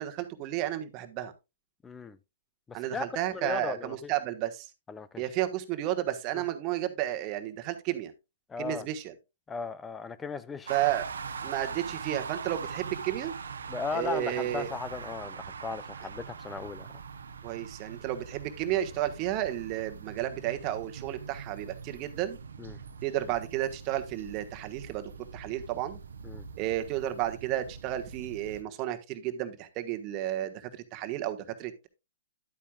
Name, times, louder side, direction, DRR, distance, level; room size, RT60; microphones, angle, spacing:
voice 1, 0.0-1.3 2.7-4.7 5.2-8.1 8.6-9.1 10.7-11.1 11.4-13.3 13.9-14.7 17.4-22.4 23.0-26.0 26.6-31.9, right 13 dB, 35° right, 1.3 m, -32 dB
voice 2, 1.8-2.2 2.7-4.1 4.9-5.2 6.3-6.4 8.5-8.9 9.5-10.7 13.7-17.0 22.6-22.8 26.2-26.5, left 5 dB, 15° left, 0.6 m, -37 dB
sound 1, 10.7-28.6, right 6 dB, 80° right, 0.9 m, -42 dB
11.0 x 8.5 x 2.3 m
hypercardioid pair, 130°, 0 cm